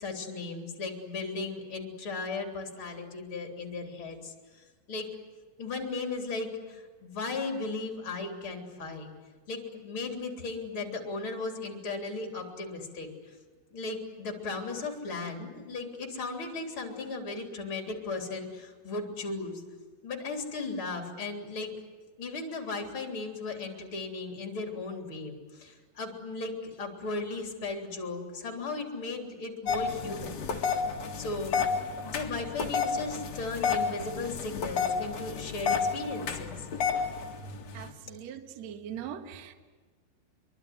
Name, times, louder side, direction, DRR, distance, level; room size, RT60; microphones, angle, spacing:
voice 1, 0.0-5.1 5.6-9.1 9.5-13.4 13.7-19.6 20.0-21.7 22.2-30.8 31.1-31.6 32.0-36.7, left 3 dB, 30° left, 2 dB, 3.6 m, -36 dB
sound 1, 29.7-37.9, left 5 dB, 50° left, 2.2 m, -31 dB
voice 2, 37.7-39.5, right 9 dB, 75° right, 7 dB, 1.5 m, -41 dB
25.0 x 23.5 x 9.5 m, 1.4 s
omnidirectional pair, 5.7 m